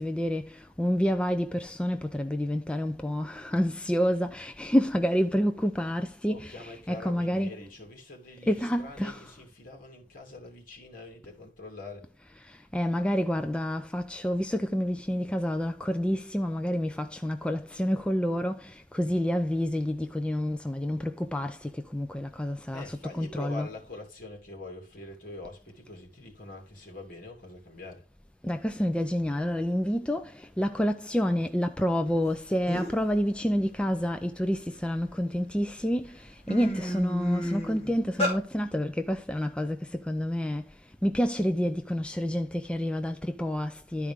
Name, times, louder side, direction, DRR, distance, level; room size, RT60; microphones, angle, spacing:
voice 1, 0.0-7.5 8.5-9.3 12.4-23.7 28.4-44.1, equal, 5° left, 0.4 m, -28 dB
voice 2, 6.3-12.1 22.7-28.1, left 2 dB, 50° left, 2.8 m, -44 dB
sound 1, 32.3-32.4 32.7-33.1 33.5-35.1 35.7-35.8 36.2-38.4, equal, 35° left, 2.6 m, -32 dB
12.5 x 4.7 x 3.6 m
head